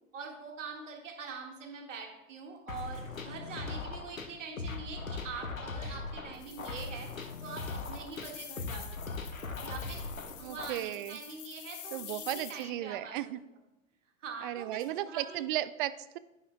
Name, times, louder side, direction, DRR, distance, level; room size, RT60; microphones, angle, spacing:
voice 1, 0.1-7.1 7.4-8.9 9.1-9.2 9.6-10.1 10.4-13.2 14.2-15.5, right 5 dB, 70° right, 2 dB, 1.8 m, -44 dB
sound 1, 2.7-10.7, left 3 dB, 85° left, 0.9 m, -40 dB
sound 2, 6.3-12.6, left 12 dB, 40° left, 0.8 m, -48 dB
voice 2, 10.4-11.2 11.9-13.4 14.4-16.2, right 14 dB, 40° right, 15 dB, 0.4 m, -35 dB
10.5 x 9.4 x 2.3 m, 0.92 s
figure-of-eight pair, 85°, 40 cm